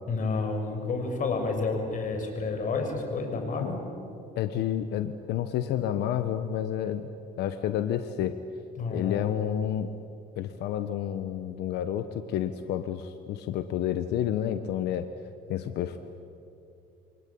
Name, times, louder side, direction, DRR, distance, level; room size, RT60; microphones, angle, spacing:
voice 1, 0.1-3.8 8.8-9.3, left 3 dB, 50° left, 4 dB, 6.4 m, -30 dB
voice 2, 4.3-7.0 7.4-8.4 8.9-9.9 10.4-15.1 15.5-16.0, left 10 dB, 80° left, 9 dB, 1.2 m, -30 dB
29.0 x 24.0 x 8.7 m, 2.7 s
cardioid pair, 110°, 17 cm